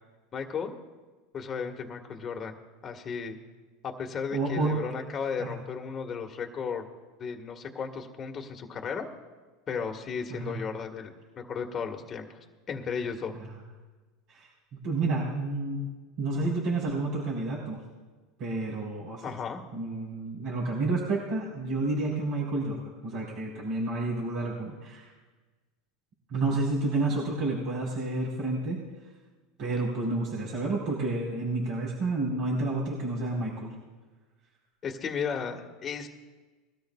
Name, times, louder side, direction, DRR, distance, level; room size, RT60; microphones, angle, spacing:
voice 1, 0.3-0.7 1.3-2.5 2.8-3.4 3.8-6.9 7.2-9.1 9.7-12.4 12.7-13.3 19.2-19.6 34.8-36.1, left 6 dB, 30° left, 3 dB, 1.6 m, -34 dB
voice 2, 4.3-4.9 5.4-5.5 10.3-10.6 13.3-13.6 14.3-15.9 16.2-17.8 18.4-19.2 19.7-25.1 26.3-28.8 29.6-33.7, right 2 dB, 50° right, -5 dB, 4.4 m, -30 dB
21.5 x 13.0 x 2.4 m, 1.3 s
supercardioid pair, 120°, 0 cm